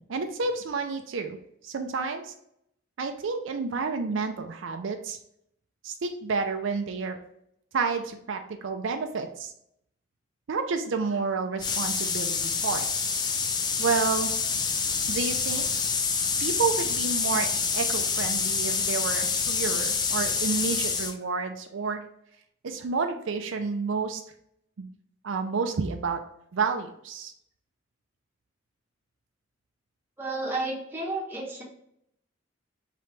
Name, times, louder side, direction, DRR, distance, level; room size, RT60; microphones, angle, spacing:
voice 1, 0.0-1.4 1.6-2.3 3.0-5.2 5.8-7.2 7.7-9.5 10.5-12.9 13.8-14.3 15.1-15.6 16.4-22.0 22.6-24.2 24.8-24.9 25.2-26.2 26.5-27.3, right 4 dB, 75° right, 6 dB, 0.4 m, -30 dB
sound 1, 11.6-21.1, left 5 dB, 20° left, 0.4 m, -27 dB
voice 2, 30.2-31.6, right 2 dB, 10° right, -3 dB, 1.0 m, -31 dB
3.8 x 3.2 x 3.2 m, 0.74 s
head